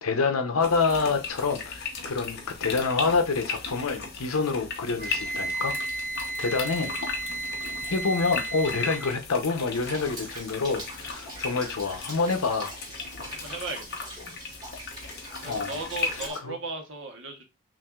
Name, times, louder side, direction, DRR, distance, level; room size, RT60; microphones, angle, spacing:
voice 1, 0.0-5.8 6.4-6.9 7.2-7.4 7.9-12.7 15.4-15.8 16.4-16.5, left 4 dB, 80° left, 0.8 m, -27 dB
sound 1, 0.6-16.3, left 4 dB, 50° left, 0.9 m, -37 dB
Wind instrument woodwind instrument, 5.0-9.2, right 2 dB, 40° right, 0.9 m, -33 dB
Rain, 9.7-16.4, right 1 dB, 20° right, 1.4 m, -43 dB
voice 2, 13.2-14.1 15.4-17.4, right 3 dB, 60° right, 1.1 m, -36 dB
5.9 x 2.6 x 2.4 m
head